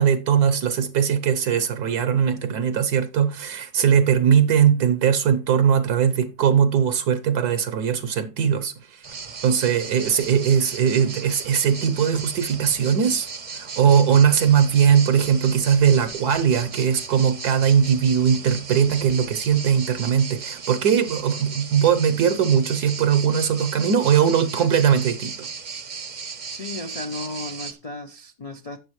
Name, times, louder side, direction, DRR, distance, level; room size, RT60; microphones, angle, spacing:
voice 1, 0.0-9.0 9.4-13.3 13.5-25.5, right 8 dB, 75° right, 1.3 m, -20 dB
sound 1, 9.0-27.7, right 5 dB, 40° right, 0.7 m, -36 dB
voice 2, 26.5-28.8, left 2 dB, 70° left, 0.3 m, -35 dB
12.0 x 8.0 x 3.1 m
omnidirectional pair, 1.7 m